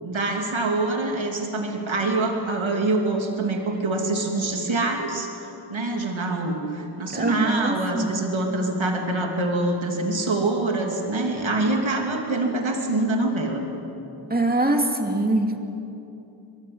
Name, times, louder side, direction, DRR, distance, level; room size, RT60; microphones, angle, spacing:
voice 1, 0.0-5.3 5.7-13.6, right 2 dB, 80° right, 2 dB, 3.1 m, -25 dB
voice 2, 7.1-8.1 14.3-15.6, right 2 dB, 20° right, 3 dB, 2.5 m, -23 dB
23.5 x 20.5 x 8.0 m, 2.9 s
wide cardioid pair, 65°, 46 cm